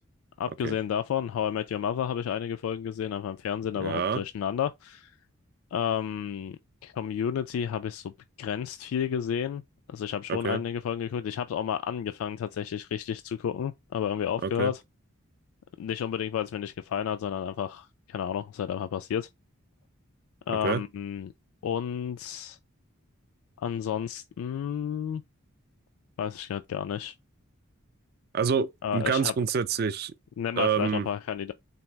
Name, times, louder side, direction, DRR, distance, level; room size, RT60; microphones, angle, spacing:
voice 1, 0.4-5.2 5.7-9.6 9.9-14.8 15.8-19.3 20.5-21.3 21.6-22.6 23.6-25.2 26.2-27.1 28.8-29.3 30.4-31.5, left 8 dB, 85° left, 0.3 m, -31 dB
voice 2, 3.7-4.2 10.3-10.6 14.4-14.7 20.5-20.8 28.3-30.1 30.6-31.1, right 6 dB, 50° right, 0.4 m, -27 dB
4.0 x 2.0 x 4.5 m
head